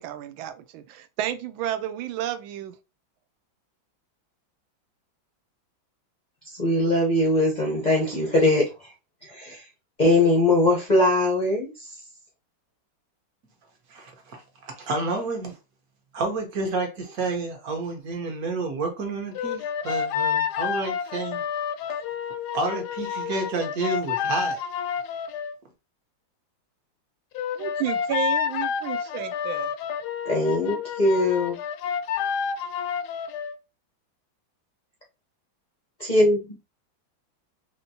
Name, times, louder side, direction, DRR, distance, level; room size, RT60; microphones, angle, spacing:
voice 1, 0.0-2.7 27.5-29.7, right 10 dB, 90° right, 1.4 m, -31 dB
voice 2, 6.6-8.9 9.3-9.6 10.0-11.9 30.2-31.6 36.0-36.6, left 1 dB, 60° left, 0.4 m, -21 dB
voice 3, 13.9-15.6 16.1-21.4 22.5-24.6, right 3 dB, 55° right, 1.3 m, -30 dB
sound 1, 19.3-25.5 27.3-33.5, left 8 dB, 75° left, 0.9 m, -29 dB
4.2 x 2.8 x 2.7 m
omnidirectional pair, 2.1 m